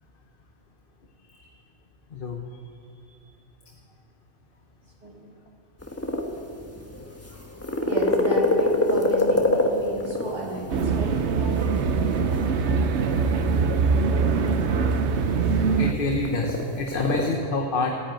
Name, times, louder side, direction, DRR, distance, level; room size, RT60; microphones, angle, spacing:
voice 1, 2.1-2.4 15.8-17.9, left 3 dB, 50° left, 2 dB, 1.2 m, -27 dB
sound 1, 5.8-17.3, left 2 dB, 10° left, 1.3 m, -28 dB
voice 2, 7.7-13.3, right 1 dB, 40° right, -4 dB, 3.3 m, -34 dB
sound 2, 10.7-15.9, right 5 dB, 70° right, 1.1 m, -23 dB
14.5 x 10.0 x 9.0 m, 2.3 s
omnidirectional pair, 1.2 m